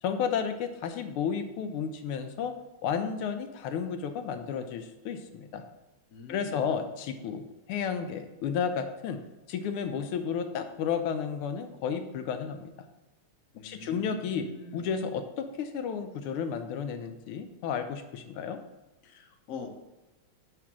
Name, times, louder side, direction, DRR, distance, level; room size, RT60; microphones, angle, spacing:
voice 1, 0.0-2.5 2.8-5.6 6.3-9.2 9.5-12.7 13.6-14.5 14.7-18.6, left 7 dB, 90° left, 7 dB, 1.5 m, -32 dB
voice 2, 6.1-6.8 13.5-14.9 19.0-19.7, left 4 dB, 60° left, 3 dB, 0.9 m, -44 dB
6.1 x 3.3 x 5.9 m, 1.1 s
omnidirectional pair, 2.3 m